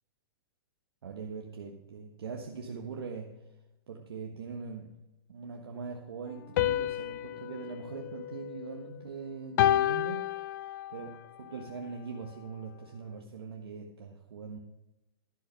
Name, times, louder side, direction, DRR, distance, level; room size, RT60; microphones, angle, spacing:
voice 1, 1.0-3.3 3.9-5.0 5.3-10.4 10.9-11.1 11.4-14.6, right 5 dB, 80° right, 1 dB, 1.5 m, -41 dB
sound 1, 6.6-9.0 9.6-11.1, left 13 dB, 50° left, 0.4 m, -30 dB
12.0 x 6.5 x 5.7 m, 0.98 s
hypercardioid pair, 130°, 13 cm